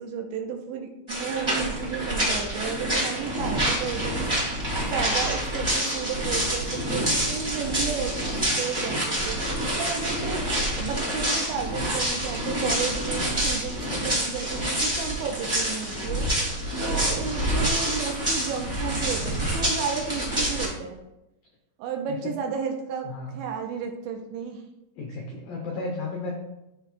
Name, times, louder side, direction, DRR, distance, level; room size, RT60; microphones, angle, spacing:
voice 1, 0.0-4.2 4.8-16.3 16.8-21.0 21.8-24.6, right 6 dB, 80° right, 3 dB, 2.9 m, -33 dB
sound 1, 1.1-20.7, right 1 dB, 15° right, 1.0 m, -27 dB
voice 2, 25.0-26.3, left 3 dB, 85° left, -1 dB, 2.0 m, -33 dB
13.5 x 4.6 x 2.3 m, 0.92 s
omnidirectional pair, 5.5 m